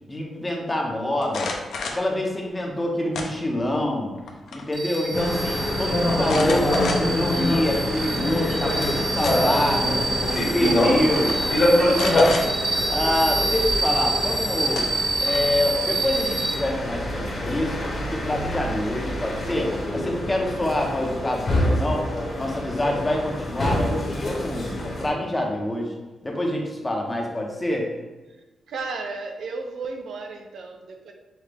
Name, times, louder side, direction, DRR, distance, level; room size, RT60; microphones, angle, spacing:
voice 1, 0.1-1.5 1.8-4.1 4.5-10.1 10.4-11.4 11.7-12.5 12.9-14.9 15.2-22.1 22.4-25.9 26.2-27.9, left 1 dB, 15° left, 0 dB, 0.6 m, -26 dB
sound 1, 1.2-2.1 3.1-3.7 4.1-4.7 4.9-5.0 6.2-7.3 7.8-7.9 8.9-9.6 10.6-10.8 11.1-11.4 11.9-12.5 14.2-14.3 14.7-15.6, left 4 dB, 85° left, 0.5 m, -31 dB
sound 2, 4.7-16.5, right 2 dB, 25° right, 0.5 m, -27 dB
sound 3, 5.1-25.1, left 1 dB, 40° left, 1.0 m, -25 dB
voice 2, 28.7-31.1, right 3 dB, 70° right, 3 dB, 0.5 m, -34 dB
5.8 x 2.1 x 3.3 m, 1.1 s
wide cardioid pair, 150°, 0 cm